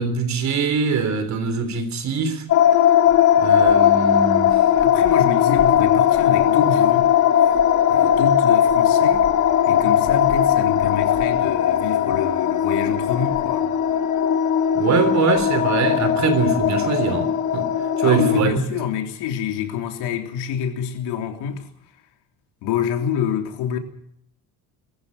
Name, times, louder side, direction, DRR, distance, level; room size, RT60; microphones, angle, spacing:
voice 1, 0.0-2.5 3.4-4.6 14.7-18.7, right 5 dB, 45° right, 3.6 m, -23 dB
sound 1, 2.5-18.4, left 9 dB, 45° left, 2.2 m, -18 dB
voice 2, 4.8-7.1 7.4-7.5 7.9-9.3 9.7-13.7 18.0-21.7 22.6-23.8, left 8 dB, 90° left, 3.5 m, -26 dB
23.0 x 14.5 x 9.7 m
cardioid pair, 145°, 39 cm